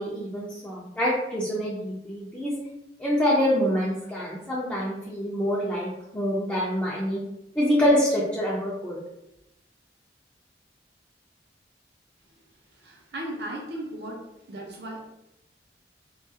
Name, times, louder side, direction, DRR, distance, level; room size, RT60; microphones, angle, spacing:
voice 1, 0.0-2.5 3.0-7.2 7.6-9.0, equal, 10° left, -7 dB, 0.4 m, -26 dB
voice 2, 12.7-15.0, right 1 dB, 65° right, -2 dB, 0.7 m, -36 dB
2.3 x 2.3 x 2.7 m, 0.88 s
head